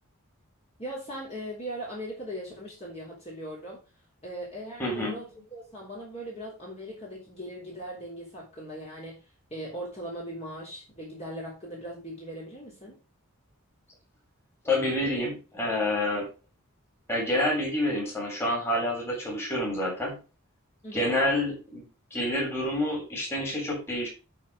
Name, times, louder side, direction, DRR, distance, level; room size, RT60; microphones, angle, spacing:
voice 1, 0.8-3.8 4.2-9.2 9.5-13.0 20.8-21.1, equal, 30° left, -4 dB, 3.3 m, -39 dB
voice 2, 4.8-5.1 14.6-16.3 17.1-20.2 20.9-24.1, left 1 dB, 10° left, -2 dB, 3.7 m, -28 dB
11.5 x 4.3 x 4.8 m, 0.31 s
head